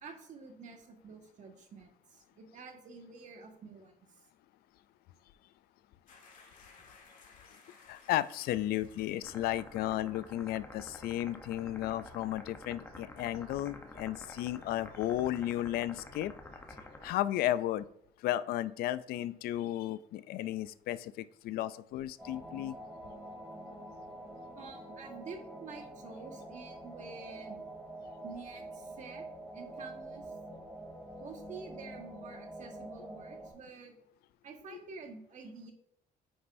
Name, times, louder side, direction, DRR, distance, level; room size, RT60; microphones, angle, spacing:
voice 1, 0.0-3.9 24.5-27.6 28.2-29.3 29.5-30.3 31.2-33.9 34.4-35.7, right 4 dB, 50° right, 3 dB, 1.6 m, -49 dB
sound 1, 6.1-10.0 10.3-10.5, left 4 dB, 55° left, 1.9 m, -59 dB
voice 2, 7.9-16.3 17.0-17.9 18.2-22.8 34.7-34.8, left 13 dB, 75° left, 16 dB, 0.4 m, -34 dB
sound 2, 9.2-17.1, left 2 dB, 15° left, 0.8 m, -50 dB
sound 3, 22.2-33.5, right 1 dB, 10° right, 2.2 m, -46 dB
9.7 x 5.4 x 2.6 m, 0.72 s
cardioid pair, 130°, 16 cm